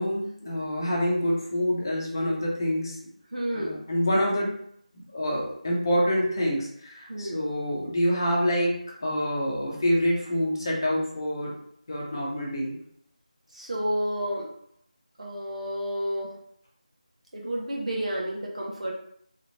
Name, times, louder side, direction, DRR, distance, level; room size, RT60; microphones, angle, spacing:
voice 1, 0.0-3.0 3.5-4.5 5.1-11.5 11.9-12.7, equal, 30° left, -3 dB, 0.8 m, -26 dB
voice 2, 3.3-3.8 7.1-7.4 13.5-14.5 15.2-16.3 17.3-18.9, equal, 60° right, -2 dB, 1.1 m, -30 dB
3.1 x 2.8 x 2.7 m, 0.67 s
figure-of-eight pair, 165°, 4 cm